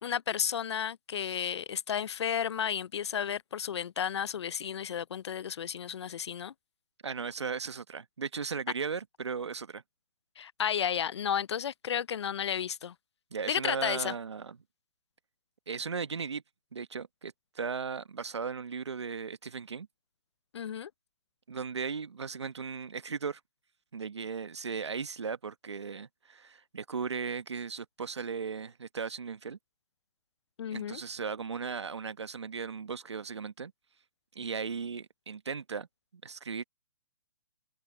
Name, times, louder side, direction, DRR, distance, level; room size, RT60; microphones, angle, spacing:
voice 1, 0.0-6.5 10.4-12.9 13.5-14.1 20.5-20.9 30.6-31.0, left 8 dB, 80° left, 0.4 m, -32 dB
voice 2, 7.0-9.8 13.3-14.6 15.7-16.4 16.7-19.9 21.5-23.4 23.9-29.6 30.7-33.7 34.3-35.9 36.2-36.6, right 5 dB, 85° right, 1.2 m, -37 dB
hypercardioid pair, 140°, 14 cm